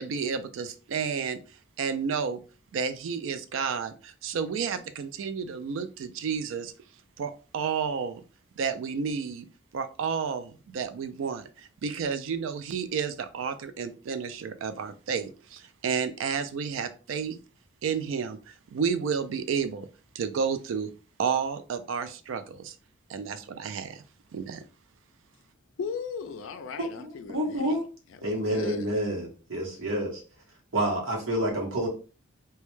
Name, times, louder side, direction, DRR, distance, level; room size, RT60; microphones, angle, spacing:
voice 1, 0.0-1.4 1.8-2.4 2.7-6.7 7.2-8.2 8.6-9.5 9.7-17.4 17.8-19.9 20.1-20.9 21.2-22.8 23.1-24.0 24.3-24.6, right 6 dB, 70° right, 0.3 m, -31 dB
voice 2, 25.8-27.8 28.1-28.9, left 5 dB, 70° left, 0.3 m, -37 dB
voice 3, 27.0-27.8 28.2-30.2 30.7-31.9, right 1 dB, 90° right, 0.9 m, -28 dB
2.2 x 2.1 x 3.0 m
head